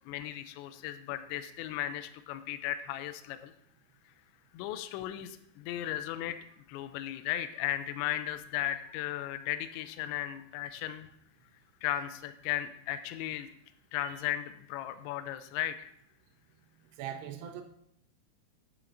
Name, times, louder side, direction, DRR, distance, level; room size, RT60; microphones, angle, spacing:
voice 1, 0.1-3.5 4.5-6.4 6.7-11.1 11.8-13.5 13.9-15.7, left 12 dB, 80° left, 11 dB, 2.7 m, -36 dB
voice 2, 17.0-17.6, right 9 dB, 80° right, 3 dB, 2.4 m, -40 dB
9.6 x 8.9 x 2.6 m, 0.69 s
omnidirectional pair, 5.4 m